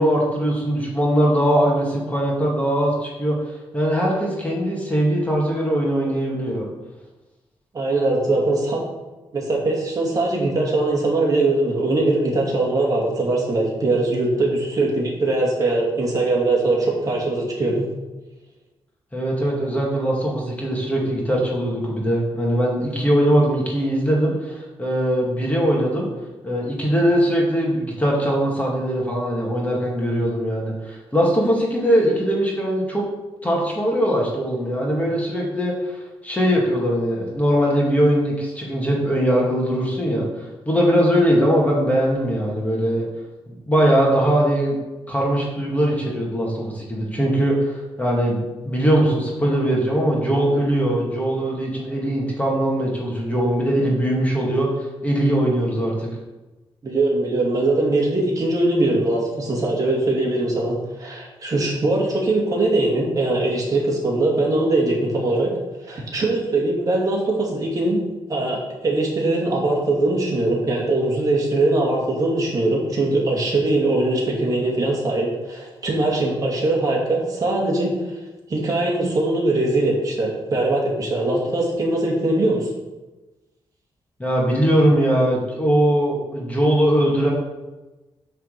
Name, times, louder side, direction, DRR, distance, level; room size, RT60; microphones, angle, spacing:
voice 1, 0.0-6.7 19.1-26.1 26.4-33.0 33.4-43.1 43.7-44.8 45.1-54.7 55.0-56.1 84.2-87.3, equal, 15° left, -3 dB, 2.3 m, -21 dB
voice 2, 7.7-8.8 9.3-17.9 56.8-65.5 65.9-68.0 68.3-77.9 78.5-82.7, right 2 dB, 35° right, -2 dB, 2.5 m, -21 dB
9.6 x 4.4 x 6.8 m, 1.1 s
wide cardioid pair, 130°, 10 cm